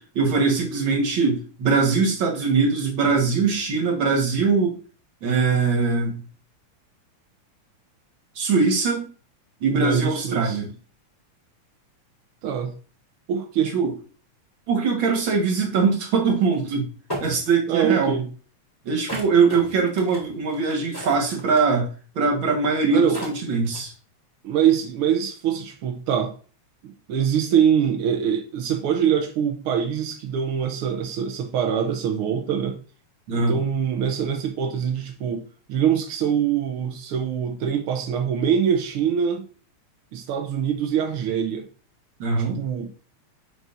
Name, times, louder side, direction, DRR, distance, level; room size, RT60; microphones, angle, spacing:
voice 1, 0.0-4.8 5.2-6.2 8.4-9.1 9.6-10.7 13.7-13.9 14.7-16.9 17.2-18.2 18.9-21.9 22.2-23.9 33.3-33.6 42.2-42.6, right 4 dB, 50° right, 1.9 m, -22 dB
voice 2, 9.7-10.6 12.4-12.7 13.3-13.7 17.7-18.3 22.9-23.2 24.4-26.3 26.8-32.8 33.3-39.5 40.1-41.7 42.5-42.9, right 8 dB, 80° right, 1.2 m, -24 dB
sound 1, 16.5-16.6 17.1-17.5 19.1-21.7 22.7-22.8 23.1-23.9, equal, 5° left, 3.0 m, -34 dB
7.5 x 5.3 x 2.7 m
omnidirectional pair, 3.5 m